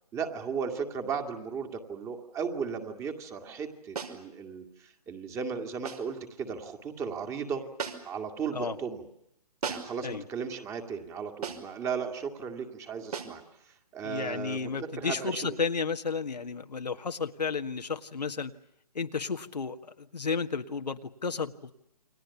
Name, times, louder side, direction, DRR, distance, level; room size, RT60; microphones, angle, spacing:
voice 1, 0.1-7.6 8.0-9.1 9.7-15.6, right 6 dB, 15° right, 7 dB, 2.2 m, -36 dB
sound 1, 3.9-4.2 5.8-6.1 7.8-8.2 9.6-10.0 11.4-11.8 13.1-13.4, right 6 dB, 70° right, 5.4 m, -37 dB
voice 2, 14.0-18.5 19.0-21.7, left 5 dB, 85° left, 7 dB, 1.8 m, -32 dB
29.0 x 23.5 x 7.1 m, 0.79 s
hypercardioid pair, 150°, 20 cm